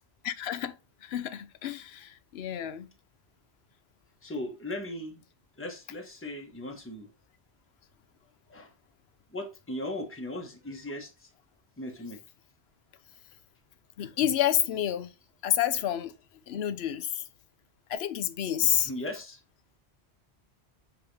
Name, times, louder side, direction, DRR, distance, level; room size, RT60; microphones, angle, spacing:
voice 1, 0.2-0.7 1.0-2.9 14.0-15.1 15.4-16.1 16.5-17.2 17.9-18.9, left 10 dB, 75° left, 0.9 m, -29 dB
voice 2, 4.2-5.2 5.6-7.1 8.5-8.7 9.3-11.3 11.8-12.2 18.6-19.4, left 1 dB, 10° left, 1.2 m, -38 dB
7.7 x 3.7 x 3.3 m
omnidirectional pair, 1.1 m